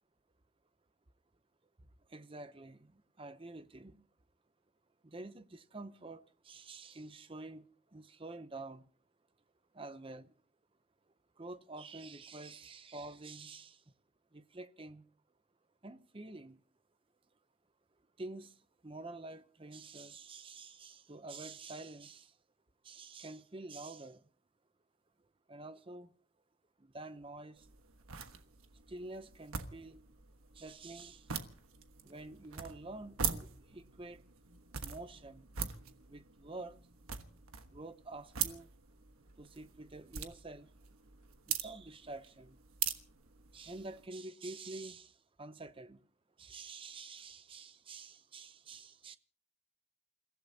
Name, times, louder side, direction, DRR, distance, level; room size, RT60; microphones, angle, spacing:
voice 1, 2.1-2.9 3.2-4.0 5.0-7.7 7.9-8.8 9.7-10.3 11.4-13.8 14.3-15.0 15.8-16.6 18.2-18.5 18.8-22.3 22.8-24.2 25.5-26.1 26.9-27.6 28.9-30.0 30.6-31.3 32.0-34.2 34.8-35.4 36.1-36.7 37.7-38.7 39.4-40.7 41.5-42.5 43.5-45.1 45.4-46.0 46.4-49.2, right 2 dB, 25° right, 0.7 m, -48 dB
sound 1, 27.6-44.1, right 8 dB, 90° right, 1.3 m, -43 dB
29.0 x 15.5 x 2.8 m
head